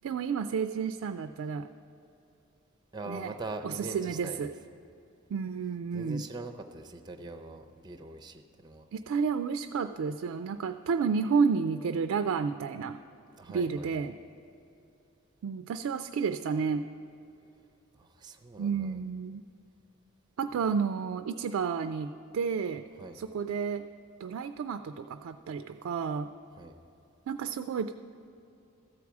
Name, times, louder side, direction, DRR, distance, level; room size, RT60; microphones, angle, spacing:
voice 1, 0.0-1.7 3.1-3.3 3.6-4.5 5.3-6.2 8.9-13.0 13.5-14.2 15.4-16.8 18.6-19.4 20.4-22.8 23.1-23.8 24.2-26.3 27.3-27.9, right 5 dB, 80° right, 8 dB, 0.3 m, -31 dB
voice 2, 2.9-4.5 5.9-8.9 13.3-14.1 17.9-19.0 23.0-23.2 26.5-26.8, right 2 dB, 20° right, 6 dB, 0.5 m, -42 dB
14.0 x 4.7 x 7.1 m, 2.8 s
head